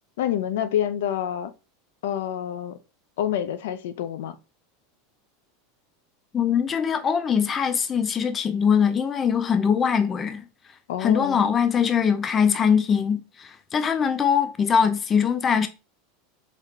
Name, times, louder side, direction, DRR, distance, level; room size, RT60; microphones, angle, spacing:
voice 1, 0.2-1.5 2.0-2.8 3.2-4.4 10.9-11.5, left 10 dB, 80° left, 0.6 m, -27 dB
voice 2, 6.3-10.4 11.0-15.7, left 7 dB, 20° left, 0.4 m, -22 dB
4.1 x 2.7 x 3.1 m
supercardioid pair, 145°, 0 cm